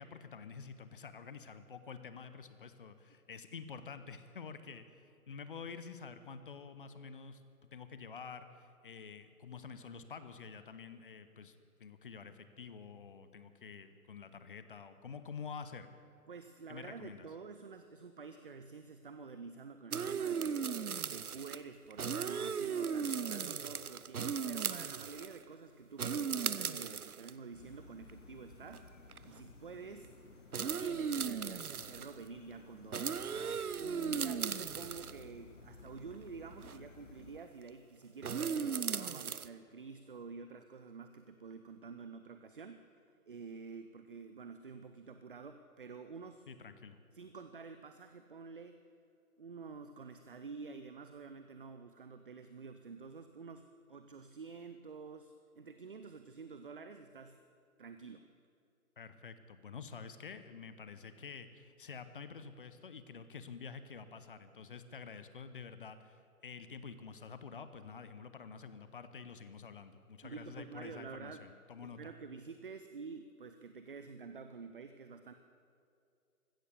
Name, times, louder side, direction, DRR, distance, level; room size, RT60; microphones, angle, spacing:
voice 1, 0.0-7.4 7.7-15.9 16.7-17.3 46.5-47.0 59.0-72.1, left 5 dB, 35° left, 11 dB, 0.9 m, -49 dB
voice 2, 16.3-20.6 21.0-28.8 29.2-30.1 30.6-33.3 33.8-46.5 47.1-48.8 49.4-53.6 53.9-57.4 57.8-58.2 70.2-71.5 71.8-75.3, right 5 dB, 35° right, 8 dB, 0.6 m, -49 dB
sound 1, 19.9-21.6 21.9-25.4 26.0-27.3 28.1-28.2 28.7-28.8 29.1-29.4 30.5-32.1 32.9-35.2 36.6-36.8 38.2-39.5, right 6 dB, 75° right, 0.7 m, -37 dB
sound 2, 27.5-37.4, left 3 dB, 55° left, 1.1 m, -56 dB
15.5 x 13.5 x 6.8 m, 2.5 s
figure-of-eight pair, 135°, 45 cm